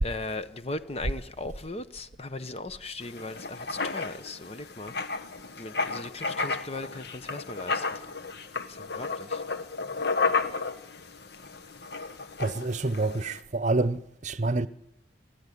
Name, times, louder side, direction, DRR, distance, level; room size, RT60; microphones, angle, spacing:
voice 1, 0.0-4.9 5.6-8.0 8.7-9.4, left 2 dB, 35° left, 1.0 m, -38 dB
Writing, 3.0-13.4, left 4 dB, 60° left, 1.5 m, -33 dB
voice 2, 12.4-14.7, right 2 dB, 40° right, 0.9 m, -27 dB
28.0 x 13.5 x 10.0 m
head